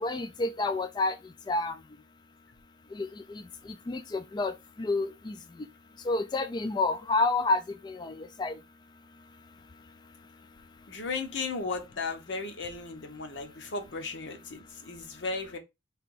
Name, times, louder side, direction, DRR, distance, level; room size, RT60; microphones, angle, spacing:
voice 1, 0.0-1.1 1.5-1.7 3.0-3.1 3.9-4.5 4.8-5.3 6.1-8.6, left 3 dB, 25° left, 0.3 m, -29 dB
voice 2, 10.9-15.6, left 4 dB, 85° left, 1.0 m, -35 dB
3.4 x 3.0 x 4.6 m
head